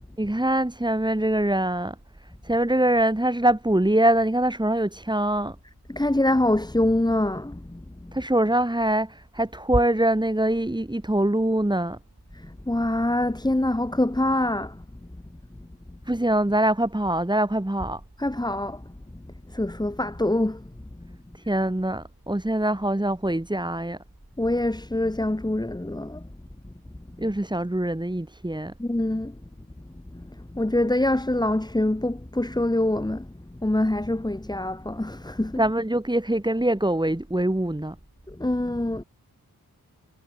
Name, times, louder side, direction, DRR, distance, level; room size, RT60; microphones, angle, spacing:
voice 1, 0.2-1.9 2.4-5.5 8.1-12.0 16.1-18.0 21.5-24.0 27.2-28.7 35.6-37.9, right 1 dB, 10° right, 4.8 m, -23 dB
voice 2, 5.9-7.8 12.7-14.7 18.2-18.8 19.5-20.6 24.4-26.2 28.8-29.3 30.1-30.2 30.5-33.3 33.6-35.6 38.4-39.0, left 1 dB, 10° left, 1.5 m, -24 dB
wide cardioid pair, 115°, 38 cm